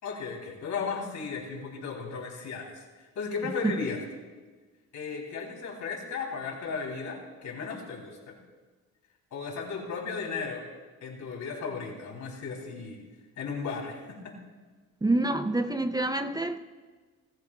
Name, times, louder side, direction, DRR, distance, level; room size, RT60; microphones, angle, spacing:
voice 1, 0.0-2.8 3.2-4.0 4.9-8.4 9.3-10.7 11.0-13.0 13.4-14.3, left 5 dB, 70° left, 0 dB, 3.5 m, -35 dB
voice 2, 15.0-16.6, right 2 dB, 15° right, 8 dB, 0.6 m, -27 dB
30.0 x 13.0 x 2.4 m, 1.4 s
cardioid pair, 90°, 30 cm